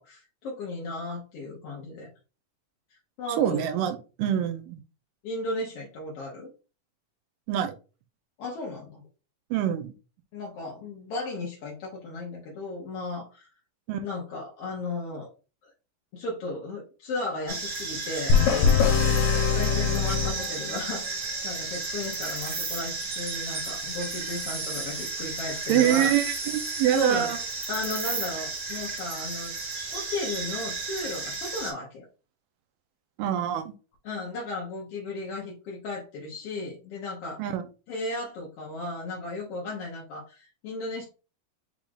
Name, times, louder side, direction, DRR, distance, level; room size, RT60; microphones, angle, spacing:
voice 1, 0.0-2.1 3.2-3.7 5.2-6.5 8.4-9.0 10.3-13.5 14.0-15.3 15.6-15.7 16.1-18.8 19.5-21.2 21.4-26.1 26.9-27.3 27.7-29.5 29.9-32.0 34.0-37.4 37.9-41.0, left 2 dB, 75° left, -2 dB, 1.4 m, -35 dB
voice 2, 3.4-4.8 7.5-7.8 9.5-9.9 13.9-14.0 25.7-27.4 33.2-33.7 37.4-37.6, right 11 dB, 80° right, 8 dB, 2.2 m, -25 dB
sound 1, 17.5-31.7, right 3 dB, 55° right, 1.2 m, -33 dB
sound 2, 18.3-21.1, left 6 dB, 90° left, 2.4 m, -23 dB
6.0 x 2.4 x 3.6 m, 0.33 s
omnidirectional pair, 4.0 m